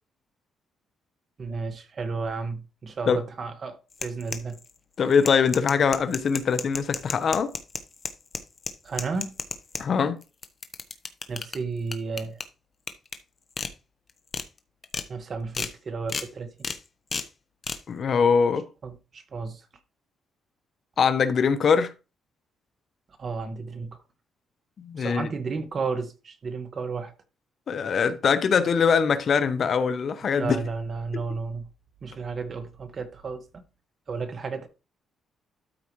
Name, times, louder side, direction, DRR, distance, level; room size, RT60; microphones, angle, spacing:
voice 1, 1.4-4.6 8.8-9.4 11.3-12.4 15.1-16.5 18.8-19.6 23.2-24.0 25.0-27.1 30.4-31.7 32.0-33.6 34.1-34.7, right 4 dB, 45° right, 1.6 m, -33 dB
sound 1, 3.9-4.7 5.1-9.8 10.2-11.6 11.9-12.4 12.9-13.2 13.6-13.7 14.1-14.4 14.8-15.1 15.5-15.7 16.1-16.3 16.6-16.8 17.1-17.3 17.6-17.8, left 4 dB, 40° left, 1.2 m, -32 dB
voice 2, 5.0-7.5 9.8-10.2 17.9-18.7 21.0-21.9 24.8-25.3 27.7-30.6, left 6 dB, 55° left, 1.0 m, -22 dB
13.0 x 4.9 x 3.2 m
cardioid pair, 90°, 0 cm